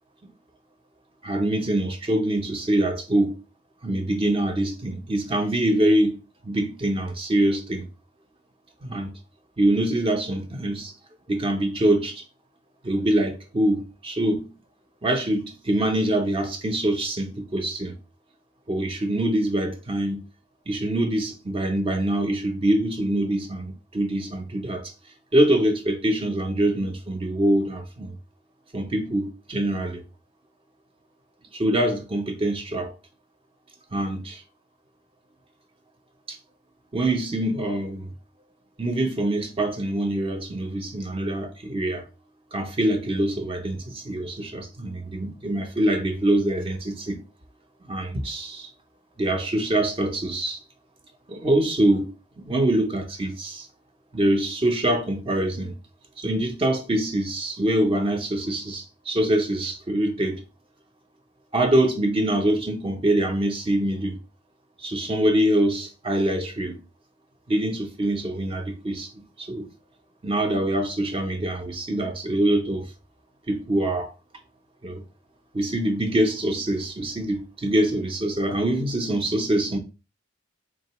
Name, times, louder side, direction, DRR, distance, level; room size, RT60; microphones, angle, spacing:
voice 1, 1.2-3.3 3.8-6.2 6.4-7.9 8.8-9.1 9.6-10.9 11.3-12.2 12.8-14.5 15.0-18.0 18.7-20.2 20.7-24.9 25.3-28.1 28.7-30.0 31.5-33.0 33.9-34.4 36.3-36.4 36.9-38.1 38.8-42.0 42.5-47.2 47.8-48.7 49.2-50.6 51.3-53.7 54.1-55.8 56.2-60.4 61.5-64.2 64.8-66.8 67.5-69.7 70.2-72.9 73.5-74.1 74.8-75.0 75.5-79.8, right 1 dB, 25° right, 0.5 m, -24 dB
3.6 x 3.6 x 2.9 m
head